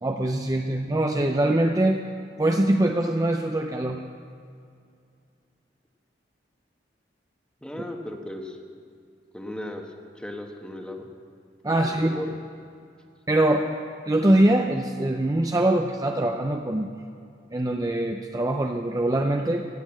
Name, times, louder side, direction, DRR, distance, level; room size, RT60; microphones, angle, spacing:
voice 1, 0.0-2.0 2.4-4.0 11.6-12.2 13.3-13.7 14.1-16.9 17.5-19.7, right 1 dB, 20° right, 3 dB, 0.5 m, -23 dB
voice 2, 7.6-8.6 9.3-9.8 10.2-11.1 12.0-12.3, left 1 dB, 5° left, 3 dB, 1.2 m, -35 dB
15.0 x 7.7 x 8.7 m, 2.4 s
head